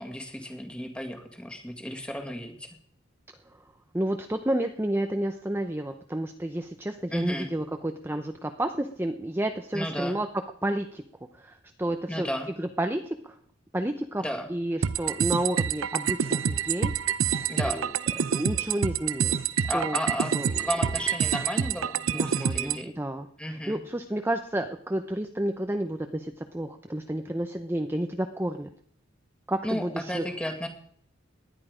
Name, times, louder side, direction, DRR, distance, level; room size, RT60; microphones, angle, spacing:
voice 1, 0.0-2.7 7.1-7.5 9.7-10.2 12.1-12.5 14.2-14.5 17.5-17.8 19.7-20.3 20.6-22.9 23.4-23.8 29.6-30.7, equal, 5° left, 5 dB, 2.0 m, -33 dB
voice 2, 3.9-10.3 10.6-11.0 11.3-12.3 12.6-13.4 13.7-14.2 14.5-16.9 17.7-17.8 18.2-20.0 20.3-20.6 22.1-23.3 23.7-28.7 29.5-30.2, right 1 dB, 10° right, 6 dB, 0.7 m, -30 dB
sound 1, 14.8-22.8, right 7 dB, 90° right, 0.6 m, -27 dB
18.5 x 11.0 x 5.1 m, 0.63 s
head